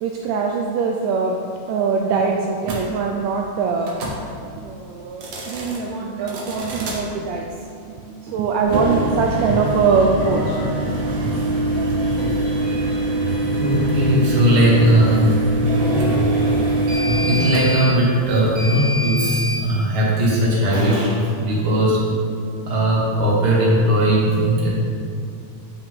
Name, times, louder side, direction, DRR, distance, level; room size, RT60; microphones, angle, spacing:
voice 1, 0.0-1.4 1.7-3.9 4.4-7.5 7.9-10.6 16.6-16.8 22.1-22.2, right 5 dB, 80° right, 1 dB, 1.7 m, -22 dB
sound 1, 2.6-2.8 3.8-4.2 5.1-5.8 6.3-7.0 8.6-19.6, right 1 dB, 60° right, 1.7 m, -23 dB
sound 2, 8.3-18.7, equal, 45° left, 1.3 m, -31 dB
voice 2, 13.6-15.4 17.2-22.1 22.7-24.7, right 1 dB, 40° right, -5 dB, 1.9 m, -18 dB
9.3 x 5.6 x 3.7 m, 2.4 s
omnidirectional pair, 3.3 m